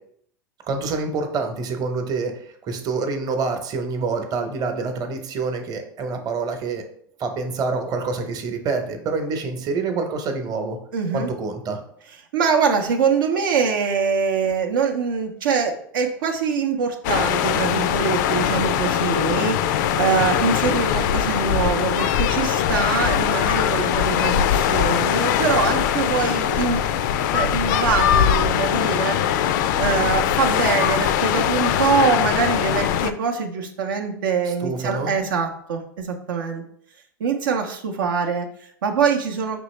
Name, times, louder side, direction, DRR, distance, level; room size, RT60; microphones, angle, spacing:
voice 1, 0.7-6.8 7.2-10.8 11.1-11.8 34.5-35.1, right 4 dB, 35° right, 5 dB, 0.9 m, -27 dB
voice 2, 10.9-11.3 12.3-26.8 27.3-29.2 29.8-36.6 37.2-39.6, right 5 dB, 75° right, 2 dB, 0.6 m, -23 dB
sound 1, 17.0-33.1, left 9 dB, 60° left, 0.4 m, -21 dB
5.3 x 3.0 x 3.1 m, 0.65 s
hypercardioid pair, 95°, 11 cm